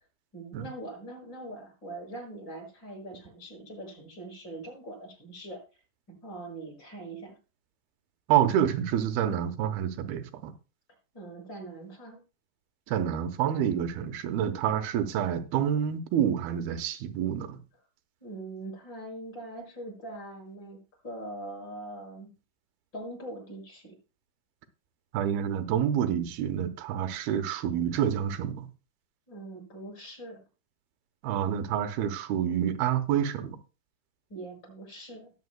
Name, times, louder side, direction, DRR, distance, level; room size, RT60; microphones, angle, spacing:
voice 1, 0.3-5.6 6.1-7.4 11.1-12.2 18.2-20.8 21.0-22.3 22.9-23.9 29.3-30.4 34.3-35.3, right 2 dB, 30° left, 6.5 m, -42 dB
voice 2, 8.3-10.5 12.9-17.6 25.1-28.7 31.2-33.6, right 9 dB, 80° right, 2.9 m, -28 dB
19.0 x 8.7 x 2.2 m
omnidirectional pair, 4.4 m